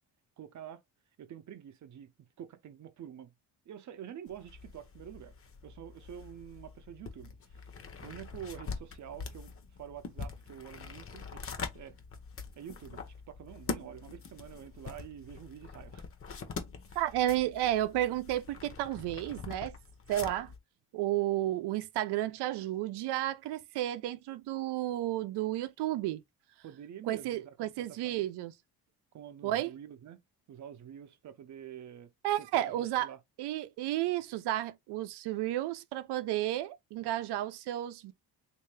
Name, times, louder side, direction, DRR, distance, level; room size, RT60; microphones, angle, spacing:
voice 1, 0.4-0.8 1.2-2.1 2.4-3.3 3.7-5.3 5.6-7.7 8.0-9.5 9.8-12.0 12.6-16.0 16.9-17.2 26.6-28.3 29.1-30.2 30.5-32.1 32.4-33.2, right 9 dB, 45° right, 0.7 m, -47 dB
sound 1, 4.3-20.6, left 5 dB, 35° left, 0.8 m, -44 dB
voice 2, 17.0-19.7 20.1-20.5 20.9-26.2 27.1-28.5 29.4-29.7 32.2-33.1 33.4-38.1, right 13 dB, 85° right, 0.6 m, -32 dB
3.2 x 2.7 x 3.3 m
cardioid pair, 120°, 39 cm